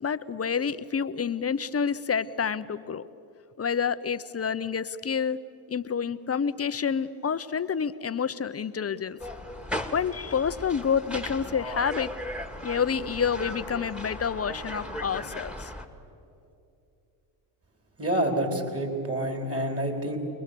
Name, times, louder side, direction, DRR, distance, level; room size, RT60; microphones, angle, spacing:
voice 1, 0.0-3.0 3.6-5.4 5.7-9.2 9.9-12.1 12.6-15.7, left 6 dB, 30° left, 13 dB, 0.8 m, -28 dB
sound 1, 9.2-15.9, left 1 dB, ahead, 2.1 m, -37 dB
voice 2, 18.0-20.2, right 1 dB, 25° right, 4 dB, 4.3 m, -28 dB
29.5 x 21.0 x 7.0 m, 2.7 s
hypercardioid pair, 60°, 50 cm